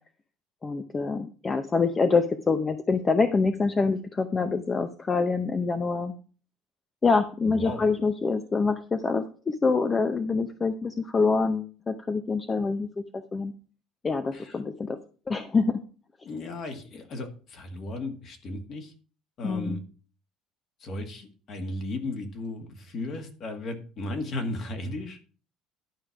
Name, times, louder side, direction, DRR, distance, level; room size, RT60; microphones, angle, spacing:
voice 1, 0.6-6.1 7.0-12.9 13.1-13.5 14.0-15.0 15.3-15.8 19.4-19.8, left 4 dB, 20° left, 9 dB, 0.6 m, -25 dB
voice 2, 7.5-7.8 14.3-14.6 16.2-18.9 19.4-19.8 20.8-25.2, left 2 dB, 40° left, 6 dB, 1.9 m, -35 dB
11.5 x 5.0 x 6.0 m, 0.38 s
cardioid pair, 145°, 0 cm